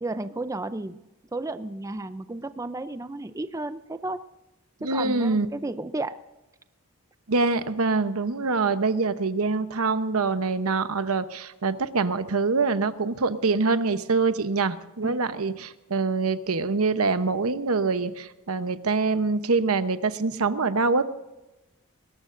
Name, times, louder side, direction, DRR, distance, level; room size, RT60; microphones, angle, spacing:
voice 1, 0.0-1.0 1.3-4.2 4.8-6.2 15.0-15.2, right 2 dB, 15° right, 12 dB, 0.5 m, -33 dB
voice 2, 4.8-5.5 7.3-21.0, right 4 dB, 80° right, 11 dB, 0.9 m, -25 dB
21.5 x 18.0 x 2.6 m, 1.0 s
head